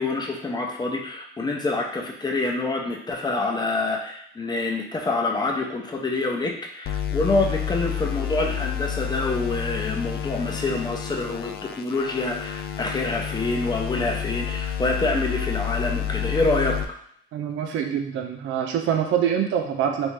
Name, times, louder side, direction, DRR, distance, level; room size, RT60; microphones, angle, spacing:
voice 1, 0.0-16.8, left 2 dB, 20° left, 1 dB, 0.7 m, -26 dB
sound 1, 6.9-16.9, left 9 dB, 55° left, 0.4 m, -30 dB
voice 2, 17.3-20.1, right 8 dB, 80° right, 3 dB, 0.6 m, -25 dB
3.2 x 2.6 x 3.1 m, 0.67 s
cardioid pair, 90°, 20 cm